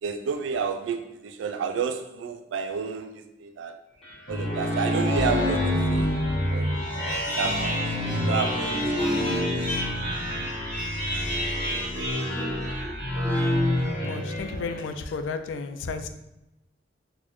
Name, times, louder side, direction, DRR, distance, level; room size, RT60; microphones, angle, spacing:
voice 1, 0.0-3.8 4.3-6.1 6.5-7.7 8.2-8.8 9.1-9.2, right 6 dB, 90° right, 7 dB, 0.3 m, -31 dB
sound 1, 4.0-14.9, left 1 dB, 30° left, 1.1 m, -27 dB
voice 2, 14.0-16.1, left 4 dB, 90° left, 8 dB, 0.3 m, -33 dB
4.1 x 2.1 x 2.9 m, 0.89 s
head